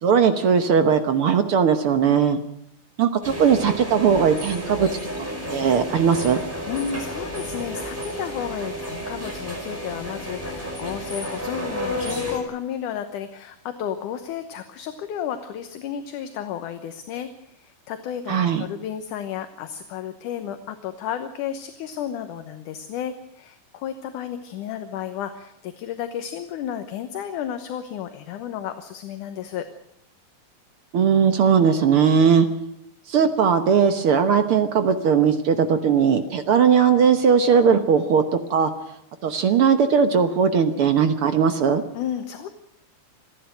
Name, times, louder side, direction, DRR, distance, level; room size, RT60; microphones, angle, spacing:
voice 1, 0.0-2.4 3.0-4.9 5.5-6.4 18.3-18.6 30.9-32.5 33.1-38.7 39.2-41.8, right 6 dB, 60° right, 8 dB, 1.5 m, -19 dB
sound 1, 3.2-12.4, equal, 5° right, 4.9 m, -31 dB
voice 2, 6.7-17.3 17.6-29.7 41.9-42.5, left 9 dB, 75° left, 8 dB, 2.5 m, -32 dB
27.5 x 10.5 x 8.9 m, 0.75 s
omnidirectional pair, 3.8 m